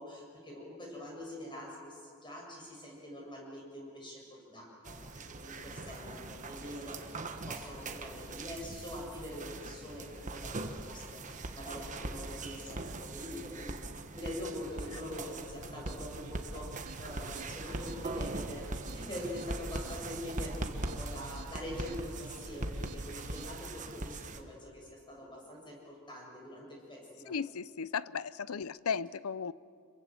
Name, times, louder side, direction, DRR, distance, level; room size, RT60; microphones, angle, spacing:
voice 1, 0.0-13.8 14.1-27.4, left 1 dB, 20° left, -1 dB, 7.3 m, -44 dB
sound 1, 4.8-24.4, right 2 dB, 35° right, 1.3 m, -41 dB
sound 2, 15.5-23.6, right 3 dB, 85° right, 1.0 m, -50 dB
voice 2, 27.3-29.5, left 6 dB, 70° left, 18 dB, 0.6 m, -35 dB
27.0 x 23.0 x 7.7 m, 2.2 s
head